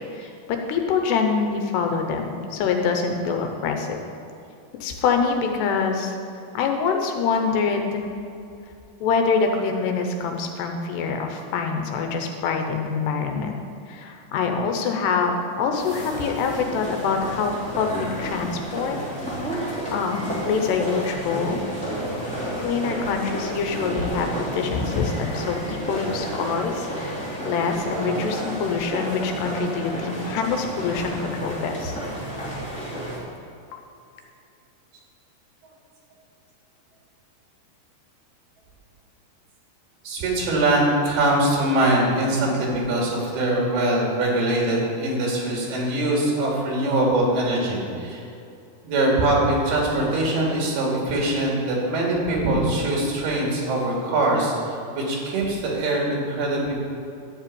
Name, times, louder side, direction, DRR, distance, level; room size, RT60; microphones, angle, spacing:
voice 1, 0.1-4.0 4.8-6.2 6.5-8.1 9.0-13.5 13.9-19.0 19.2-19.6 19.9-21.7 22.6-32.0, left 5 dB, 80° left, 4 dB, 3.0 m, -25 dB
sound 1, 15.8-33.2, right 1 dB, 5° left, 1.7 m, -31 dB
voice 2, 40.0-48.2 48.8-56.7, right 1 dB, 70° right, -2 dB, 4.2 m, -22 dB
11.5 x 5.5 x 8.6 m, 2.6 s
omnidirectional pair, 4.9 m